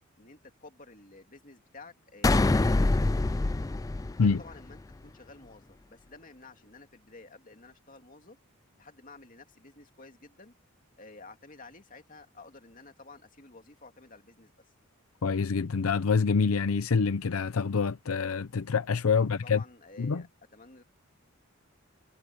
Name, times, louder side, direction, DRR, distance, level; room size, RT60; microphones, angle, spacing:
voice 1, 0.2-3.4 4.1-8.4 8.8-10.5 11.0-14.5 19.1-20.8, left 3 dB, 40° left, 2.6 m, -52 dB
sound 1, 2.2-4.8, left 2 dB, 15° left, 0.3 m, -25 dB
voice 2, 15.2-19.6 20.0-20.2, left 5 dB, 85° left, 0.6 m, -26 dB
head